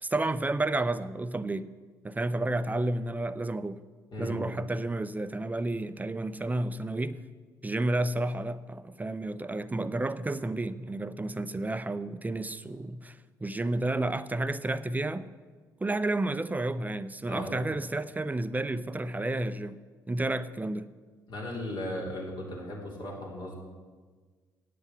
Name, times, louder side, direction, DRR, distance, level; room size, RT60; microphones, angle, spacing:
voice 1, 0.0-1.7 2.0-3.8 4.2-7.2 7.6-15.3 15.8-19.8 20.1-20.9, right 2 dB, 15° right, 0.6 m, -31 dB
voice 2, 4.1-4.5 17.3-17.6 21.3-23.5, left 1 dB, 50° left, 3.6 m, -37 dB
9.4 x 8.1 x 8.2 m
hypercardioid pair, 50°, 10 cm